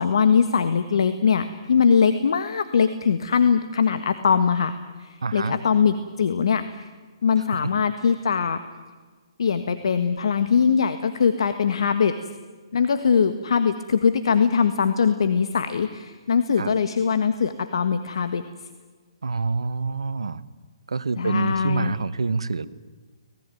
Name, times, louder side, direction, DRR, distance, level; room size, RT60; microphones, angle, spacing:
voice 1, 0.0-4.7 5.0-6.9 7.2-8.6 9.4-12.1 12.7-18.4 21.2-21.9, left 6 dB, 70° left, 10 dB, 1.6 m, -21 dB
voice 2, 5.2-5.6 7.6-7.7 16.6-16.7 19.2-20.4 20.9-22.7, right 4 dB, 85° right, 14 dB, 1.2 m, -26 dB
25.5 x 19.5 x 9.3 m, 1.4 s
hypercardioid pair, 145°, 3 cm